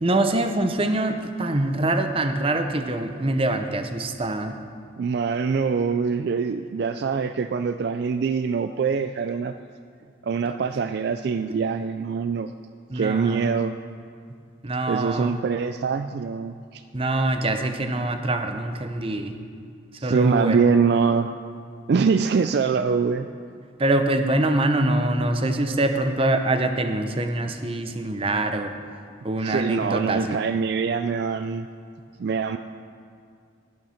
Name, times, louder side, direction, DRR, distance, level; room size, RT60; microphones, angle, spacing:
voice 1, 0.0-4.5 12.9-13.5 14.6-15.4 16.9-19.3 20.0-20.6 23.8-28.7 29.2-30.4, right 2 dB, 30° right, 6 dB, 0.7 m, -24 dB
voice 2, 5.0-9.5 10.2-12.5 12.9-13.7 14.9-16.8 20.0-21.3 21.9-23.3 29.4-31.7 32.2-32.6, right 5 dB, 55° right, 9 dB, 0.3 m, -24 dB
19.5 x 6.5 x 5.8 m, 2.3 s
head